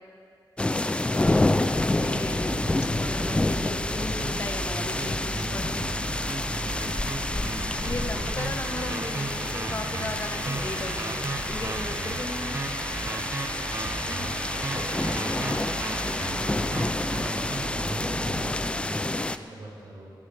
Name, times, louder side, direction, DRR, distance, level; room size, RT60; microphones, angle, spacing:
sound 1, 0.6-19.4, left 2 dB, 15° left, 0.4 m, -28 dB
voice 1, 0.6-1.5 6.4-7.9 12.4-12.9 13.2-20.1, right 1 dB, 85° right, -3 dB, 4.7 m, -43 dB
voice 2, 1.1-1.6 2.0-2.6 3.0-5.8 7.8-12.6 14.1-14.3, left 2 dB, 35° left, 5 dB, 1.1 m, -36 dB
sound 2, 2.0-18.7, right 3 dB, 35° right, 0.7 m, -35 dB
24.5 x 15.5 x 3.4 m, 2.3 s
wide cardioid pair, 165°, 8 cm